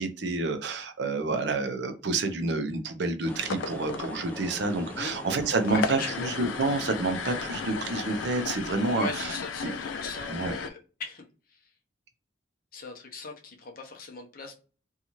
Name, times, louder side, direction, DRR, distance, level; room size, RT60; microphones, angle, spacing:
voice 1, 0.0-9.4 9.6-9.7 10.3-10.5, right 3 dB, 65° right, 8 dB, 0.5 m, -29 dB
sound 1, 3.2-8.3, left 2 dB, 10° left, 0.5 m, -42 dB
sound 2, 3.3-10.7, left 5 dB, 85° left, 0.4 m, -36 dB
voice 2, 5.7-6.3 8.9-11.2 11.5-11.6 12.7-14.6, left 3 dB, 50° left, 2 dB, 0.7 m, -39 dB
2.7 x 2.3 x 2.9 m, 0.35 s
head